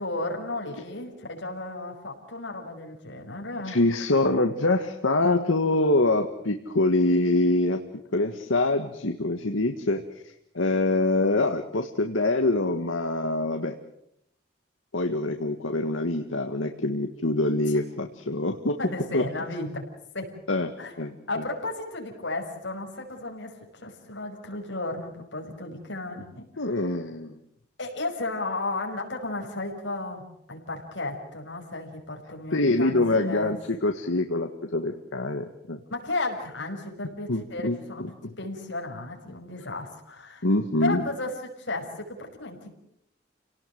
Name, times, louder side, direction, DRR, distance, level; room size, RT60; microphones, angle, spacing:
voice 1, 0.0-3.8 17.7-17.8 18.8-19.9 20.1-20.3 20.8-20.9 21.3-27.0 27.8-33.5 35.9-40.5 40.8-42.7, left 2 dB, 70° left, 1 dB, 5.7 m, -34 dB
voice 2, 3.7-7.8 8.1-10.0 10.5-13.8 14.9-18.8 19.1-19.2 20.5-20.7 21.0-21.1 26.6-27.4 32.5-35.8 37.3-38.3 40.4-41.0, left 2 dB, 85° left, 5 dB, 1.6 m, -25 dB
29.5 x 18.5 x 7.8 m, 0.75 s
head